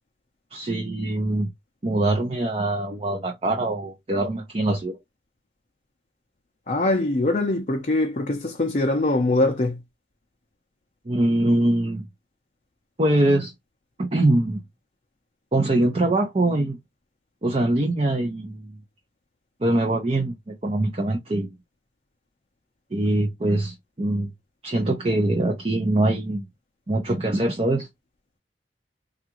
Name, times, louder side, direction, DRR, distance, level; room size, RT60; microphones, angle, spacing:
voice 1, 0.5-1.5 1.8-5.0 11.1-12.0 13.0-13.5 14.0-14.6 15.5-16.8 17.4-18.7 19.6-21.5 22.9-24.3 24.6-26.4 26.9-27.9, right 1 dB, 35° right, 0.6 m, -23 dB
voice 2, 6.7-9.8, left 2 dB, 40° left, 0.5 m, -22 dB
3.5 x 2.4 x 2.9 m
head